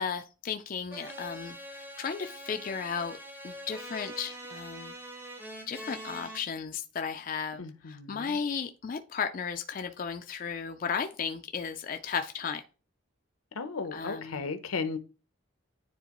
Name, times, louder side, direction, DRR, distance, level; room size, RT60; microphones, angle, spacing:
voice 1, 0.0-3.2 3.4-4.9 5.7-12.6 13.9-14.4, left 6 dB, 40° left, 0.3 m, -35 dB
sound 1, 0.9-6.4, equal, 10° right, 0.6 m, -43 dB
voice 2, 7.6-8.4 13.5-15.0, left 4 dB, 85° left, 0.8 m, -35 dB
9.4 x 3.7 x 3.0 m
head